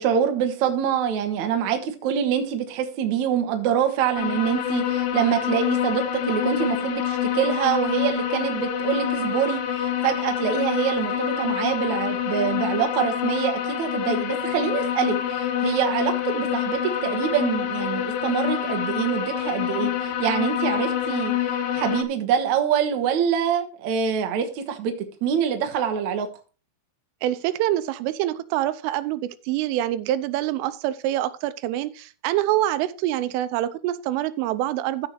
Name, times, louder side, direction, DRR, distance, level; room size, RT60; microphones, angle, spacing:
voice 1, 0.0-24.9 25.2-26.3, right 8 dB, 70° right, 1.7 m, -25 dB
sound 1, 4.2-22.0, left 10 dB, 80° left, 3.4 m, -26 dB
voice 2, 27.2-35.1, right 13 dB, 85° right, 3.2 m, -25 dB
14.5 x 6.9 x 3.1 m
omnidirectional pair, 5.6 m